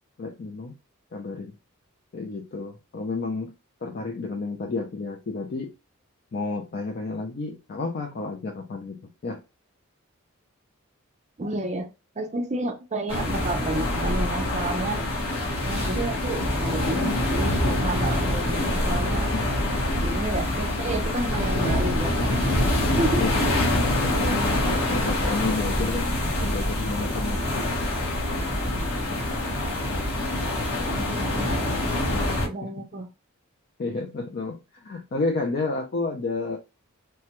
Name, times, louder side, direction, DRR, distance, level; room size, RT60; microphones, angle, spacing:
voice 1, 0.2-0.8 1.1-1.5 2.1-3.5 3.8-5.7 6.3-9.4 19.3-19.5 23.2-23.3 24.0-27.4 32.6-32.7 33.8-36.6, left 3 dB, 45° left, 4 dB, 0.4 m, -31 dB
voice 2, 11.4-11.9 12.2-15.0 15.7-19.3 20.0-23.5 30.9-31.8 32.4-33.1, right 2 dB, 35° right, 3 dB, 0.5 m, -31 dB
sound 1, 13.1-32.5, left 1 dB, 75° left, 1.0 m, -25 dB
3.3 x 2.2 x 2.8 m, 0.27 s
head